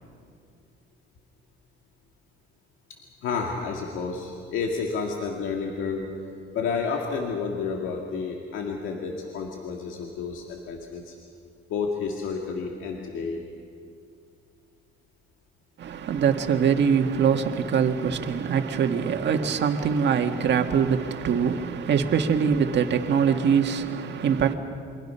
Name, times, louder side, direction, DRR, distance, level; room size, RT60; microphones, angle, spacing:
voice 1, 3.2-6.1 6.5-11.2 11.7-13.5, left 5 dB, 85° left, 2.1 m, -30 dB
voice 2, 15.8-24.5, right 7 dB, 65° right, 1.8 m, -23 dB
28.0 x 23.5 x 5.7 m
cardioid pair, 90°, 20 cm